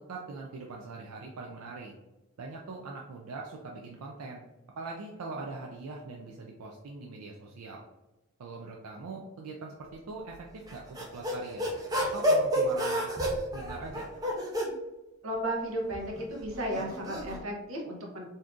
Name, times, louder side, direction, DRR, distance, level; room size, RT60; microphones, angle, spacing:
voice 1, 0.0-1.9 2.4-4.5 4.8-7.8 8.4-11.7 12.1-13.1 13.5-14.1, right 3 dB, 85° right, 0 dB, 0.4 m, -42 dB
sound 1, 10.7-14.7 15.7-17.4, equal, 15° right, 0.5 m, -30 dB
voice 2, 15.2-18.3, right 1 dB, 65° right, 0 dB, 0.8 m, -34 dB
2.7 x 2.4 x 3.6 m, 1.0 s
head